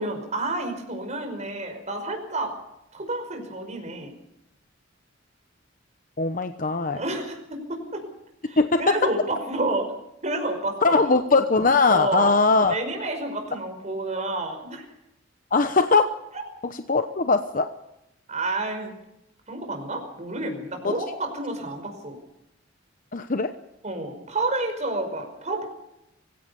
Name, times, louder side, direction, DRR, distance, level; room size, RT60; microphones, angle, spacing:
voice 1, 0.0-2.5 2.9-4.1 6.9-8.0 8.4-9.9 10.2-11.0 11.9-12.3 12.7-14.9 16.3-16.4 18.3-19.0 19.5-22.2 23.8-25.7, right 2 dB, 35° right, 5 dB, 5.3 m, -29 dB
voice 2, 6.2-7.0 8.6-8.9 10.8-12.7 15.5-16.0 16.9-17.7 23.1-23.5, left 3 dB, 45° left, 9 dB, 1.0 m, -20 dB
24.0 x 16.5 x 7.0 m, 0.86 s
head